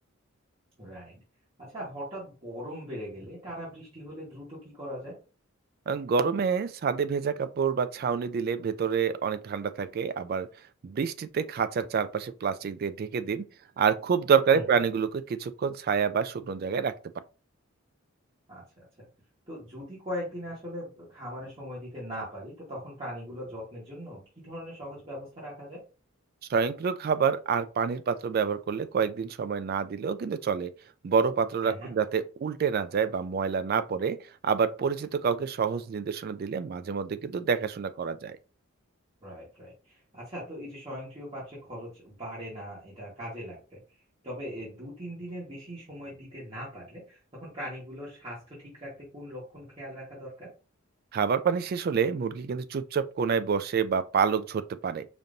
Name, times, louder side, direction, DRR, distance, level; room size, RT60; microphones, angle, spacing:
voice 1, 0.8-1.2 1.6-5.2 14.5-14.8 18.5-18.9 19.5-25.8 31.6-31.9 39.2-43.8 44.2-50.5, equal, 30° right, 1.4 m, -40 dB
voice 2, 5.9-10.5 10.8-13.4 13.8-17.0 26.5-30.7 31.0-34.2 34.4-38.4 51.1-55.1, right 6 dB, 45° right, 0.3 m, -27 dB
5.1 x 2.9 x 2.6 m
head